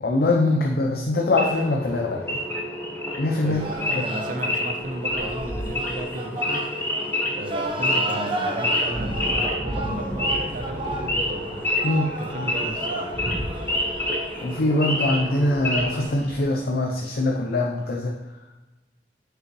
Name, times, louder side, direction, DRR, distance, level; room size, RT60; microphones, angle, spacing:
voice 1, 0.0-2.4 3.2-3.6 3.9-4.1 11.8-12.1 14.4-18.1, left 2 dB, 60° left, 0 dB, 0.6 m, -23 dB
Wild animals / Idling, 1.3-16.1, left 1 dB, 10° left, 1.1 m, -28 dB
voice 2, 3.4-6.7 7.3-11.4 12.2-13.1, right 2 dB, 50° right, 4 dB, 0.8 m, -34 dB
sound 1, 3.5-16.4, right 1 dB, 30° right, 1.0 m, -32 dB
6.3 x 5.4 x 3.1 m, 1.1 s
head